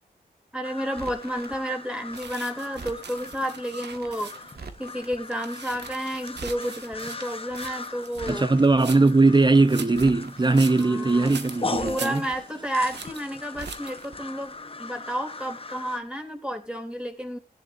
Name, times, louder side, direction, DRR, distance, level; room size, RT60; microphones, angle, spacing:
voice 1, 0.5-4.5 4.8-8.4 10.8-11.3 11.8-17.4, equal, 5° right, 2.9 m, -31 dB
sound 1, 0.6-16.0, left 3 dB, 35° left, 0.9 m, -39 dB
Crackle, 0.9-1.6 2.1-3.4 3.9-4.1 4.4-5.2 5.7-5.9 6.2-7.0 7.5-7.7 8.0-8.8 9.3-9.5 9.8-10.6 11.1-11.3 11.6-12.4 12.9-13.1 13.4-14.2 14.4-14.5, right 4 dB, 65° right, 1.7 m, -43 dB
sound 2, 2.1-4.6 5.1-9.2 9.6-12.6 12.9-13.2 13.6-14.1, right 6 dB, 90° right, 1.1 m, -42 dB
voice 2, 8.3-12.2, right 3 dB, 25° right, 0.8 m, -20 dB
17.0 x 10.5 x 2.6 m
cardioid pair, 65°, 17 cm